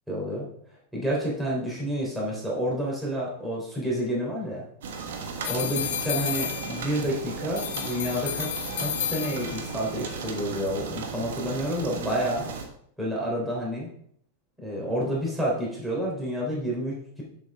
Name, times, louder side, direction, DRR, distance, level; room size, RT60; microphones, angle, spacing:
voice 1, 0.1-0.5 0.9-4.6 5.4-12.5 13.0-13.9 14.6-17.2, equal, 5° right, -4 dB, 3.4 m, -29 dB
sound 1, 4.8-12.7, right 4 dB, 75° right, 1.4 m, -36 dB
sound 2, 5.4-7.1 7.6-9.8, left 11 dB, 70° left, 0.7 m, -32 dB
7.4 x 7.4 x 3.6 m, 0.66 s
hypercardioid pair, 125°, 0 cm